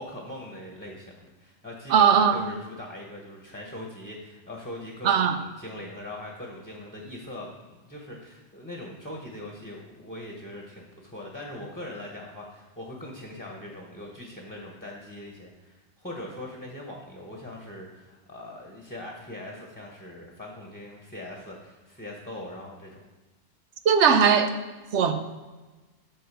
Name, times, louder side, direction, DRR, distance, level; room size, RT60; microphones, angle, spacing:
voice 1, 0.0-5.2 5.6-23.0, left 1 dB, 10° left, -1 dB, 1.1 m, -41 dB
voice 2, 1.9-2.4 5.0-5.4 23.8-24.5 24.9-25.1, right 7 dB, 80° right, 8 dB, 1.1 m, -19 dB
9.4 x 3.9 x 6.9 m, 1.2 s
omnidirectional pair, 1.2 m